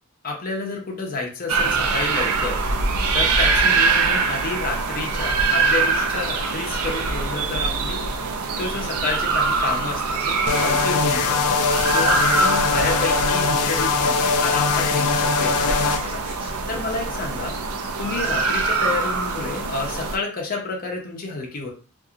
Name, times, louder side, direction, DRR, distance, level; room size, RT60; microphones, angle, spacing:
voice 1, 0.2-2.6 3.1-8.0 8.6-11.6 11.9-17.6 18.0-21.7, left 3 dB, 40° left, 0 dB, 0.7 m, -30 dB
sound 1, 1.5-20.2, right 4 dB, 80° right, 0.4 m, -24 dB
sound 2, 10.5-16.0, left 5 dB, 85° left, 0.4 m, -21 dB
Scratching (performance technique), 14.2-17.5 17.8-17.9 18.2-18.7, equal, 25° right, 0.8 m, -41 dB
2.8 x 2.6 x 2.4 m, 0.37 s
head